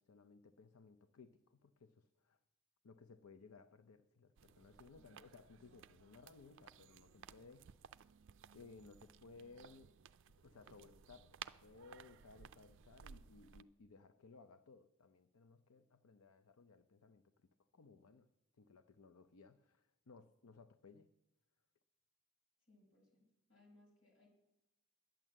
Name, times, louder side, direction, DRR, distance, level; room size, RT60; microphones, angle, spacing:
voice 1, 0.0-2.4 2.8-7.7 8.5-9.9 10.4-18.3 18.6-21.1, left 4 dB, 85° left, 9 dB, 0.6 m, -61 dB
sound 1, 4.4-13.6, right 8 dB, 60° right, 0.4 m, -58 dB
voice 2, 22.6-24.3, left 2 dB, 65° left, -1 dB, 5.3 m, -68 dB
11.0 x 9.0 x 7.4 m, 0.91 s
head